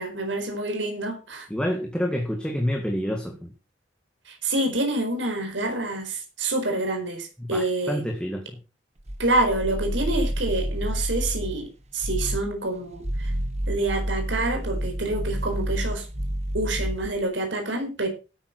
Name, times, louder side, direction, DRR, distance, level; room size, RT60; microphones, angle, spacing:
voice 1, 0.0-1.5 4.3-8.0 9.2-11.7 11.9-13.3 13.7-16.1 16.5-18.1, right 2 dB, 75° right, 4.6 m, -27 dB
voice 2, 1.5-3.5 7.4-8.5, equal, 5° left, 1.8 m, -28 dB
sound 1, 9.0-11.6 12.0-12.5 12.9-17.2, equal, 35° right, 1.5 m, -29 dB
13.0 x 8.9 x 6.2 m
head